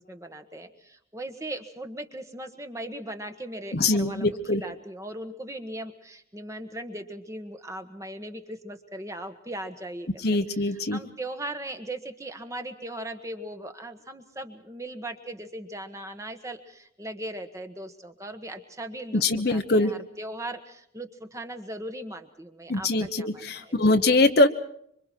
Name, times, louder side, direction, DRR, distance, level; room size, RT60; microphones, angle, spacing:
voice 1, 0.0-10.4 10.9-19.2 19.5-24.0, right 1 dB, 15° right, 7 dB, 1.4 m, -38 dB
voice 2, 3.7-4.6 10.2-11.0 19.1-19.9 22.7-24.5, left 2 dB, 55° left, 6 dB, 1.1 m, -22 dB
26.0 x 25.0 x 4.6 m, 0.69 s
head